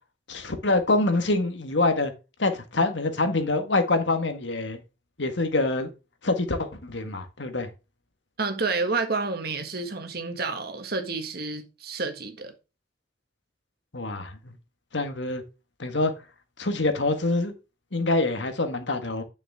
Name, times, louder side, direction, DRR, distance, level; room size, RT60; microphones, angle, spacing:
voice 1, 0.3-2.1 2.4-4.8 5.2-5.9 6.2-7.7 13.9-14.5 14.9-15.4 15.8-16.1 16.6-17.5 17.9-19.2, left 2 dB, 80° left, 1.7 m, -25 dB
voice 2, 8.4-12.5, right 3 dB, 55° right, 1.7 m, -29 dB
9.1 x 6.5 x 3.6 m
head